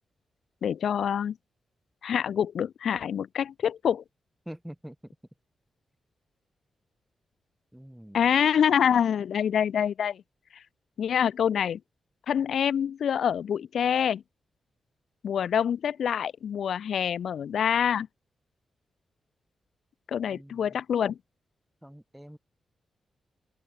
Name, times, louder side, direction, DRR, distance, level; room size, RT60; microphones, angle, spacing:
voice 1, 0.6-1.4 2.0-4.0 8.1-10.2 11.0-11.8 12.3-14.2 15.2-18.1 20.1-21.2, left 8 dB, 75° left, 0.5 m, -26 dB
voice 2, 4.5-5.0 7.7-8.3 20.3-20.8 21.8-22.4, equal, 5° right, 0.9 m, -45 dB
cardioid pair, 100°, 0 cm